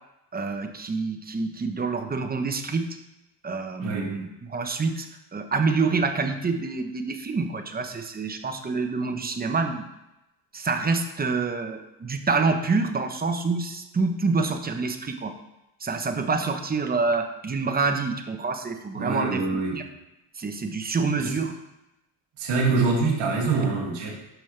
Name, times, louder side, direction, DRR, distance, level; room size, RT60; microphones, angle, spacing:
voice 1, 0.3-2.9 3.4-5.1 5.3-9.9 10.5-15.3 15.8-19.4 19.7-19.8 20.4-21.5, right 4 dB, 20° right, 6 dB, 1.0 m, -27 dB
voice 2, 3.8-4.1 18.9-19.8 21.2-21.3 22.4-24.1, right 3 dB, 65° right, -3 dB, 2.6 m, -25 dB
12.5 x 5.4 x 3.4 m, 0.91 s
cardioid pair, 100°, 47 cm